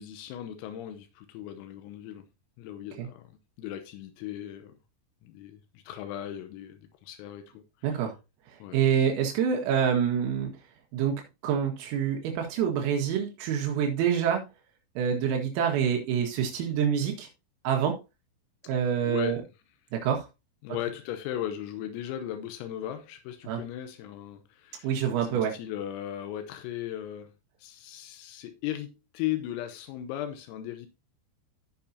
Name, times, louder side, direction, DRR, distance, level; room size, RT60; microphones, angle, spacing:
voice 1, 0.0-2.3 2.6-4.8 5.2-8.0 8.6-8.8 18.7-18.8 19.1-19.5 20.6-27.3 27.6-30.9, left 12 dB, 90° left, 3.6 m, -37 dB
voice 2, 7.8-8.2 8.7-10.5 10.9-11.1 11.4-14.4 15.0-17.3 17.6-18.0 18.7-19.4 19.9-20.3 23.5-23.6 24.8-25.5, right 8 dB, 85° right, 4.3 m, -26 dB
14.5 x 5.9 x 2.7 m
omnidirectional pair, 5.9 m